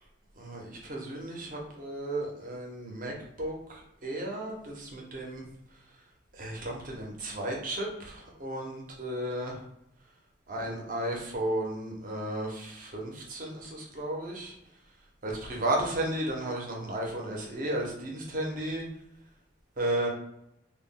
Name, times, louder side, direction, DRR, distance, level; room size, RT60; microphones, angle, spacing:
voice 1, 0.4-3.1 3.4-3.6 4.0-5.4 6.4-9.5 10.5-14.5 15.2-18.8 19.8-20.1, right 1 dB, 40° right, 0 dB, 0.6 m, -34 dB
2.2 x 2.1 x 3.5 m, 0.82 s
head